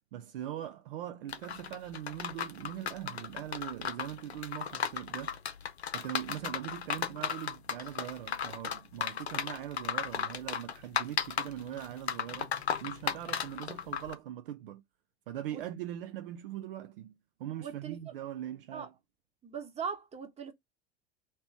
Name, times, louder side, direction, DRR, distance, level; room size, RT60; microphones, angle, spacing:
voice 1, 0.1-5.4 5.9-12.5 12.8-14.8 15.3-18.9, right 11 dB, 60° right, 0.5 m, -41 dB
sound 1, 1.3-14.1, left 7 dB, 75° left, 0.6 m, -35 dB
voice 2, 17.6-18.1 18.7-18.9 19.4-20.5, right 6 dB, 20° right, 1.0 m, -40 dB
2.9 x 2.9 x 4.5 m
figure-of-eight pair, 80°, 32 cm